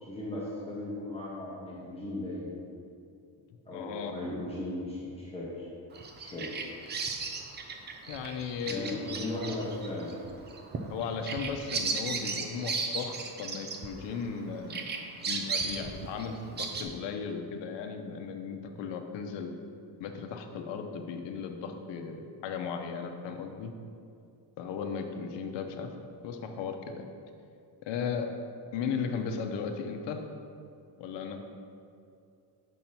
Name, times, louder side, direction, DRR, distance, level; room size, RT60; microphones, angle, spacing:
voice 1, 0.0-2.6 3.7-5.7 6.2-6.6 8.6-10.1 25.7-25.9, left 1 dB, 15° left, -7 dB, 0.8 m, -37 dB
voice 2, 3.7-4.1 8.1-9.1 10.9-19.5 20.0-23.7 24.6-25.9 26.2-27.1 27.9-28.3 28.7-30.2 31.0-31.4, left 6 dB, 75° left, 5 dB, 0.8 m, -36 dB
Bird vocalization bird call bird song, 5.9-14.4 14.7-16.8, right 4 dB, 25° right, 0.3 m, -36 dB
6.3 x 4.4 x 5.5 m, 2.5 s
cardioid pair, 175°, 44 cm